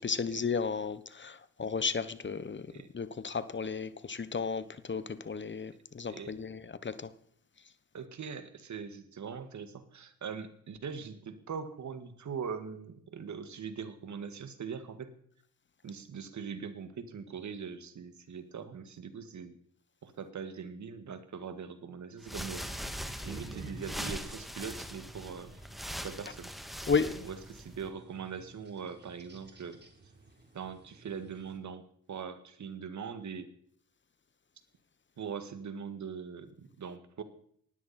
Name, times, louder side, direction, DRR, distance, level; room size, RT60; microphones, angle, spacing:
voice 1, 0.0-2.7 2.9-7.1 26.9-27.3, left 5 dB, 35° left, 14 dB, 1.1 m, -33 dB
voice 2, 7.9-15.1 15.8-19.6 20.0-22.7 23.2-25.6 26.0-26.5 27.2-29.8 30.5-31.8 32.1-33.5 35.2-37.2, right 6 dB, 60° right, 10 dB, 1.9 m, -41 dB
sound 1, 22.2-27.9, equal, ahead, 1.7 m, -41 dB
sound 2, 22.3-31.6, right 3 dB, 30° right, 3.8 m, -52 dB
19.0 x 14.0 x 4.3 m, 0.66 s
cardioid pair, 65°, 33 cm